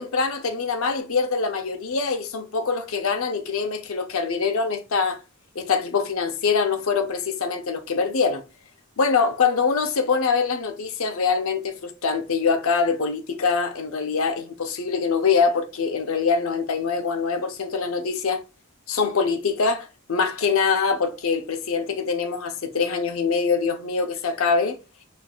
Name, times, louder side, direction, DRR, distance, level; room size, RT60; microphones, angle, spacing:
voice 1, 0.0-5.2 5.5-8.4 9.0-18.4 18.9-24.8, left 5 dB, 85° left, 0.6 m, -24 dB
5.3 x 2.4 x 2.3 m
head